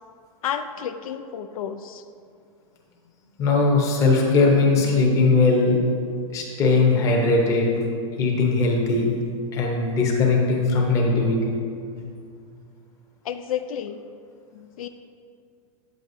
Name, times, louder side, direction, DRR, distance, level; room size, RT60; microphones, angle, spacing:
voice 1, 0.4-2.0 13.2-14.0 14.5-14.9, left 9 dB, 75° left, 8 dB, 0.4 m, -31 dB
voice 2, 3.4-5.8 6.3-7.6 8.2-9.1 9.5-11.4, left 3 dB, 15° left, -1 dB, 0.8 m, -19 dB
8.5 x 7.6 x 2.7 m, 2.3 s
supercardioid pair, 170°, 18 cm